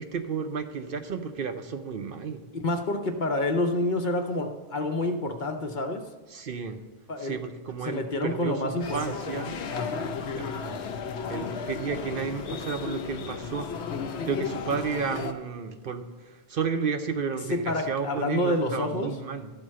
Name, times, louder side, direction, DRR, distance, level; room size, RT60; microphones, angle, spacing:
voice 1, 0.0-2.4 6.3-6.8 7.2-9.6 10.3-10.8 11.3-13.7 14.2-19.5, right 5 dB, 60° right, 7 dB, 0.8 m, -32 dB
voice 2, 2.5-6.1 7.1-7.4 7.8-9.2 9.7-10.1 17.5-19.2, left 2 dB, 50° left, 5 dB, 0.9 m, -28 dB
sound 1, 8.8-15.3, left 5 dB, 85° left, 1.0 m, -34 dB
12.5 x 4.5 x 7.4 m, 1.2 s
omnidirectional pair, 1.1 m